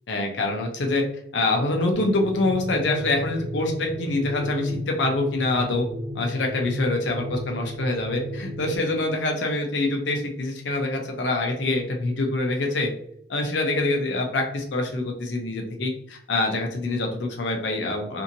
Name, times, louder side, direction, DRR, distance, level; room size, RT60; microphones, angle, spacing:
voice 1, 0.1-1.0 1.3-5.8 6.1-12.9 13.3-18.2, left 2 dB, 85° left, 2 dB, 0.6 m, -25 dB
sound 1, 1.9-8.8, left 1 dB, 35° right, 0.9 m, -34 dB
2.7 x 2.6 x 2.6 m, 0.67 s
head